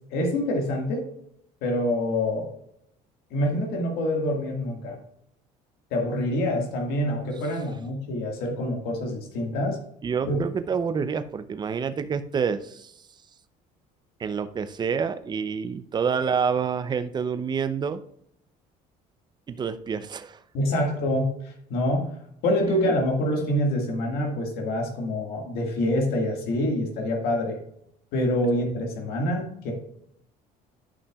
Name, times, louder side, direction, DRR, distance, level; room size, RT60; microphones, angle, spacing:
voice 1, 0.1-1.1 1.6-2.5 3.3-5.0 5.9-9.8 10.2-10.4 20.5-22.1 22.4-27.6 28.1-29.7, left 1 dB, 80° left, 1 dB, 1.8 m, -26 dB
voice 2, 10.0-12.9 14.2-18.0 19.5-20.4, right 6 dB, 25° right, 11 dB, 0.5 m, -28 dB
11.0 x 5.8 x 2.3 m, 0.73 s
cardioid pair, 115°, 16 cm